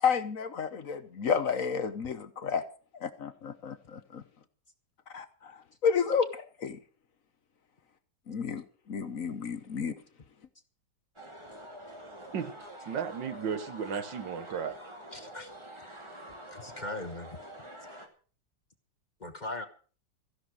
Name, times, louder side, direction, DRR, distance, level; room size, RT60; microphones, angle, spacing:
voice 1, 0.0-2.6 3.0-4.2 5.1-5.6 5.8-6.8 8.3-9.9, left 6 dB, 55° left, 12 dB, 1.3 m, -31 dB
sound 1, 11.2-18.1, right 1 dB, 15° right, 2.3 m, -47 dB
voice 2, 12.9-14.8, right 7 dB, 85° right, 11 dB, 2.0 m, -34 dB
voice 3, 15.1-15.5 16.5-17.4 19.2-19.7, left 2 dB, 30° left, 9 dB, 1.2 m, -39 dB
15.0 x 11.0 x 6.3 m, 0.40 s
omnidirectional pair, 1.9 m